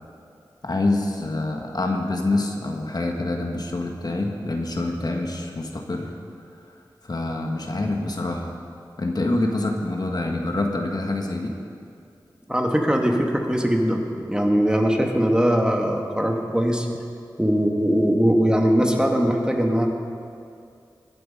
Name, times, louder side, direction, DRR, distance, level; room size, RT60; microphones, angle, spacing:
voice 1, 0.6-6.1 7.0-8.6 9.0-11.6, left 2 dB, 55° left, 2 dB, 1.5 m, -26 dB
voice 2, 12.5-14.0 14.3-16.9 17.4-19.9, equal, 10° right, 2 dB, 1.7 m, -20 dB
21.0 x 7.8 x 5.4 m, 2.4 s
cardioid pair, 45°, 8 cm